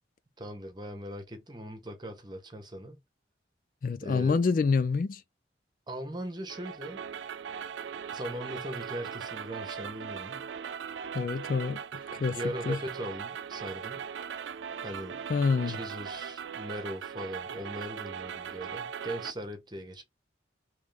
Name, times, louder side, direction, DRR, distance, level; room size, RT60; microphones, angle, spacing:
voice 1, 0.4-3.0 4.0-4.4 5.9-7.0 8.1-10.5 12.3-14.0 14.8-15.2 15.7-20.0, equal, 25° right, 1.1 m, -39 dB
voice 2, 3.8-5.2 11.1-11.8 12.1-12.4 12.7-12.8 15.3-15.8, left 4 dB, 50° left, 0.3 m, -27 dB
sound 1, 6.5-19.3, right 7 dB, 90° right, 0.3 m, -39 dB
3.5 x 3.1 x 3.4 m
head